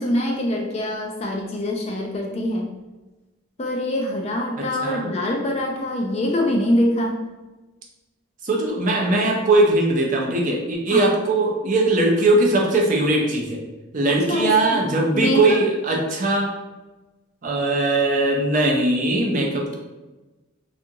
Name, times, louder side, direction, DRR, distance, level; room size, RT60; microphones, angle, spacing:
voice 1, 0.0-2.7 3.6-7.2 10.9-11.2 14.3-15.6, left 1 dB, 30° left, 0 dB, 0.3 m, -24 dB
voice 2, 8.4-13.6 13.9-16.5 17.4-19.7, right 2 dB, 40° right, -1 dB, 0.5 m, -20 dB
2.7 x 2.4 x 2.6 m, 1.1 s
head